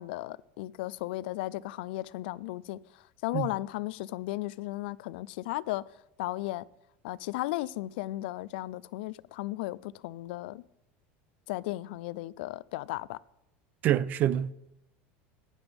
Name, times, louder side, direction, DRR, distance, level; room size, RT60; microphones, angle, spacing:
voice 1, 0.0-5.8 6.2-6.7 7.0-10.6 11.5-13.2, left 17 dB, 75° left, 0.4 m, -35 dB
voice 2, 13.8-14.5, right 11 dB, 30° right, 0.3 m, -26 dB
15.0 x 9.8 x 3.5 m
cardioid pair, 165°, 6 cm